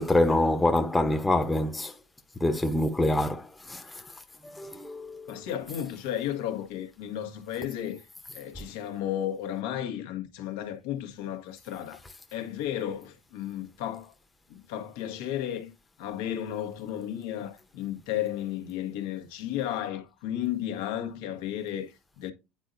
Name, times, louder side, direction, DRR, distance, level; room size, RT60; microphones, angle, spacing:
voice 1, 0.0-1.9 2.4-4.0 4.4-5.5, left 1 dB, 10° left, 0.9 m, -26 dB
voice 2, 5.3-8.0 8.3-12.0 12.3-14.1 14.5-15.7 16.0-22.3, left 11 dB, 75° left, 1.3 m, -33 dB
9.7 x 3.8 x 2.6 m
hypercardioid pair, 90°, 0 cm